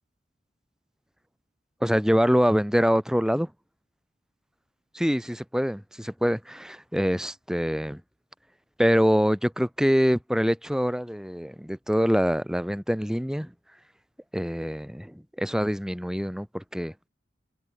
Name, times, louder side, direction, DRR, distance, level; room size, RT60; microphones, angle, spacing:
voice 1, 1.8-3.5 4.9-8.0 8.8-13.5 14.3-16.9, equal, 5° right, 2.8 m, -25 dB
head